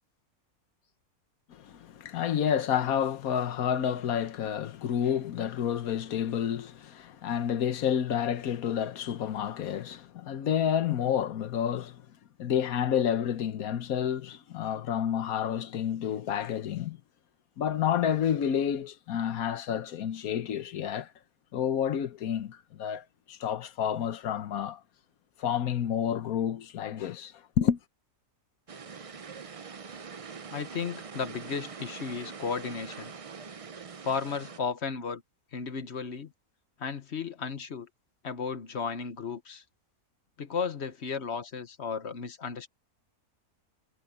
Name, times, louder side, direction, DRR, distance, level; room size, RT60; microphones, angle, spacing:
voice 1, 1.5-12.0 12.4-17.0 17.6-21.1 21.5-24.8 25.4-27.8, left 9 dB, 65° left, 1.4 m, -29 dB
sound 1, 28.7-34.6, right 5 dB, 65° right, 0.3 m, -43 dB
voice 2, 30.5-33.1 34.0-35.2 35.5-36.3 36.8-37.9 38.2-39.6 40.4-42.7, left 6 dB, 50° left, 1.2 m, -34 dB
omnidirectional pair, 1.6 m